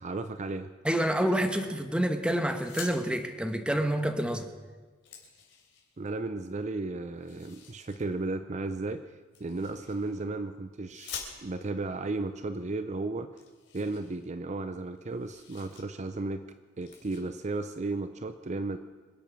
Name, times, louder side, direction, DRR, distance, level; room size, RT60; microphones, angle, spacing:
voice 1, 0.0-0.7 6.0-9.0 9.4-13.3 13.7-16.4 16.8-18.8, right 2 dB, 40° right, 10 dB, 0.6 m, -34 dB
voice 2, 0.8-4.5, right 1 dB, 5° right, 6 dB, 1.2 m, -28 dB
sound 1, 2.5-3.0 4.3-4.4 4.7-6.1 7.2-8.0 9.3-10.3 10.9-11.8 12.6-12.7 13.0-13.1 13.4-14.7 15.0-15.8 16.2-16.4 16.8-17.2, left 7 dB, 70° left, 3.7 m, -47 dB
26.5 x 8.8 x 6.1 m, 1.4 s
head